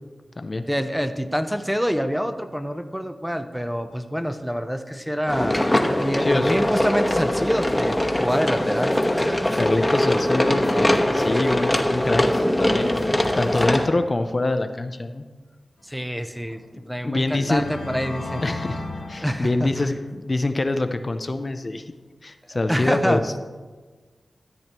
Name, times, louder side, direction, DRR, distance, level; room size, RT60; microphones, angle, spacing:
voice 1, 0.7-9.0 15.8-18.4 19.2-19.9 22.7-23.2, equal, 5° right, 8 dB, 0.6 m, -26 dB
sound 1, 5.3-13.9, left 1 dB, 15° left, 1.0 m, -22 dB
voice 2, 6.2-6.6 9.5-13.0 13.4-15.2 17.0-17.7 18.4-18.8 19.1-21.9 22.2-23.3, left 2 dB, 40° left, 8 dB, 0.5 m, -25 dB
sound 2, 16.4-16.6 17.3-20.1, left 2 dB, 80° left, 1.3 m, -35 dB
13.5 x 8.1 x 3.0 m, 1.4 s
wide cardioid pair, 65°, 0 cm